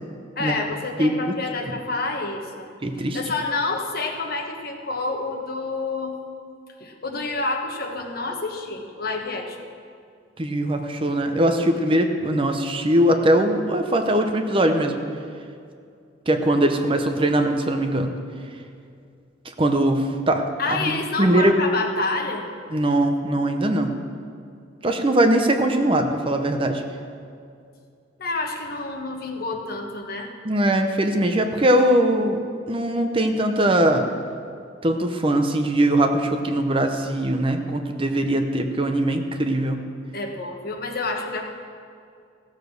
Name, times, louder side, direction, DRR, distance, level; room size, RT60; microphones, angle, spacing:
voice 1, 0.4-2.7 3.0-6.2 6.8-9.7 20.6-22.4 28.2-30.3 40.1-41.4, left 3 dB, 55° left, 2 dB, 1.3 m, -28 dB
voice 2, 2.8-3.2 10.4-15.0 16.3-18.1 19.6-20.4 20.7-21.6 22.7-23.9 24.8-26.8 30.4-32.4 32.7-34.0 34.8-39.8, right 1 dB, 30° right, 5 dB, 0.8 m, -21 dB
15.5 x 7.0 x 6.5 m, 2.3 s
head